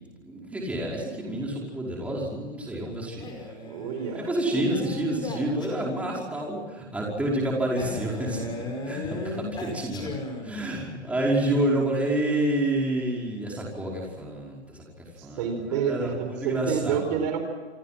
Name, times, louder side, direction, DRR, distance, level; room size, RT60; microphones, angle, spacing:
voice 1, 0.2-3.3 4.1-8.5 8.9-10.1 10.4-14.8 15.2-17.0, right 1 dB, 5° right, -3 dB, 5.3 m, -28 dB
Male speech man speaking, 3.2-6.2 7.8-10.7, left 2 dB, 10° left, 5.1 m, -36 dB
voice 2, 3.7-4.3 15.2-17.4, right 7 dB, 40° right, 6 dB, 4.9 m, -29 dB
28.0 x 24.5 x 6.0 m, 1.3 s
hypercardioid pair, 155°, 34 cm